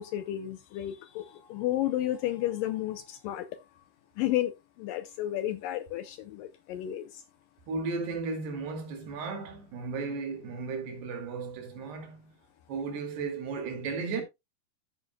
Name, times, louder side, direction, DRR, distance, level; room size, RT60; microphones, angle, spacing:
voice 1, 0.0-3.8 4.2-7.2, left 13 dB, 80° left, 2.0 m, -32 dB
voice 2, 7.7-12.4 12.7-14.2, right 4 dB, 90° right, 4.5 m, -35 dB
13.5 x 8.6 x 2.3 m
omnidirectional pair, 4.6 m